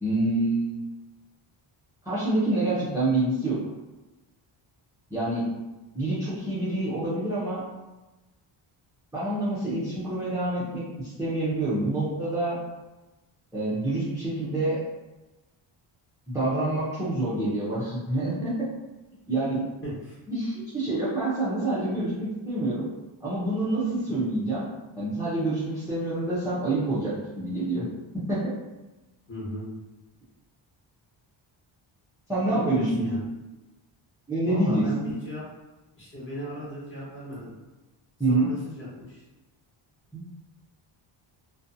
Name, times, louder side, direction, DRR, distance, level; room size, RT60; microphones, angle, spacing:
voice 1, 0.0-0.7 2.0-3.6 5.1-5.5 5.9-7.6 9.1-12.6 13.5-14.8 16.3-18.7 19.3-19.6 20.3-22.9 23.2-24.7 25.0-27.9 28.1-28.5 32.3-33.1 34.3-34.8 38.2-38.5 40.1-40.2, right 2 dB, 5° right, -11 dB, 0.5 m, -27 dB
voice 2, 19.8-20.2 29.3-29.7 32.5-33.3 34.4-35.4 35.9-37.5 38.3-39.2, equal, 25° left, -8 dB, 1.0 m, -36 dB
2.5 x 2.2 x 2.6 m, 1.1 s
wide cardioid pair, 160°, 48 cm